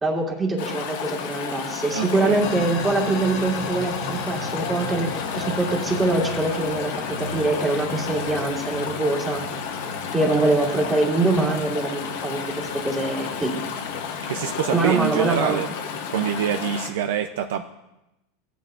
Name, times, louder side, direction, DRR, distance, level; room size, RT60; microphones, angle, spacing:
voice 1, 0.0-9.6 10.1-13.5 14.7-15.6, right 2 dB, 10° right, -1 dB, 1.7 m, -24 dB
Chatter / Stream, 0.6-16.9, left 6 dB, 80° left, 1.6 m, -32 dB
voice 2, 1.9-2.4 14.3-15.7 16.1-17.6, right 10 dB, 85° right, 5 dB, 0.5 m, -25 dB
sound 1, 2.4-15.7, left 3 dB, 60° left, 1.7 m, -37 dB
16.0 x 9.2 x 2.5 m, 0.93 s
supercardioid pair, 160°, 0 cm